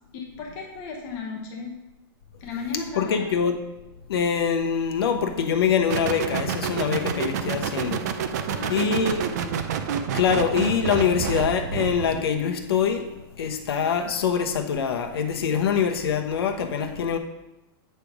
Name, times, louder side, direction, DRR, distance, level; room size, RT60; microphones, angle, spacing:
voice 1, 0.1-1.7 2.4-3.3 8.4-9.3, left 4 dB, 30° left, -1 dB, 1.0 m, -35 dB
voice 2, 3.0-3.6 4.1-8.2 8.7-9.3 10.1-13.1 13.4-17.2, left 7 dB, 75° left, 4 dB, 1.0 m, -24 dB
sound 1, 5.9-12.2, right 7 dB, 45° right, 0.5 m, -28 dB
8.3 x 3.4 x 6.0 m, 0.99 s
supercardioid pair, 175°, 13 cm